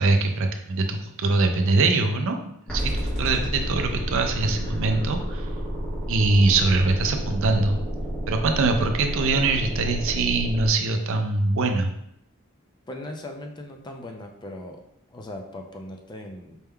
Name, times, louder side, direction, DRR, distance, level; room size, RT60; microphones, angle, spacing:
voice 1, 0.0-2.4 2.7-5.5 6.1-7.8 8.3-11.9, right 3 dB, 65° right, 5 dB, 0.5 m, -23 dB
sound 1, 2.7-10.7, equal, 5° left, 1.1 m, -30 dB
voice 2, 12.9-14.8 15.1-16.6, left 1 dB, 20° left, 3 dB, 0.4 m, -38 dB
4.4 x 3.5 x 2.2 m, 0.75 s
head